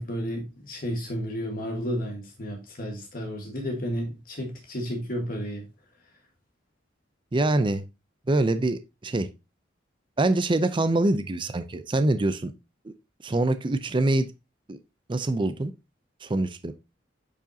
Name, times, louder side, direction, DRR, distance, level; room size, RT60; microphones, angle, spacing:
voice 1, 0.0-5.7, equal, 50° left, 1.6 m, -32 dB
voice 2, 7.3-7.8 8.3-9.3 10.2-12.5 12.8-12.9 13.2-14.3 14.7-14.8 15.1-15.7 16.2-16.7, right 2 dB, 25° right, 0.5 m, -24 dB
9.0 x 5.0 x 2.8 m
head